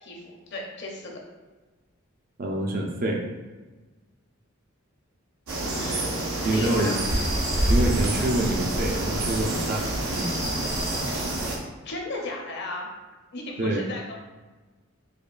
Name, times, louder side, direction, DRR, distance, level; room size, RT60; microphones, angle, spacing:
voice 1, 0.0-1.1 5.7-6.2 6.4-7.0 11.8-12.9 13.3-14.2, left 2 dB, 55° left, 0 dB, 0.6 m, -35 dB
voice 2, 2.4-3.2 6.4-7.0 7.7-10.5 11.4-11.7 13.6-13.9, right 1 dB, 45° right, 1 dB, 0.4 m, -27 dB
sound 1, 5.5-11.6, right 1 dB, 90° right, 0.7 m, -27 dB
5.0 x 2.3 x 2.5 m, 1.2 s
head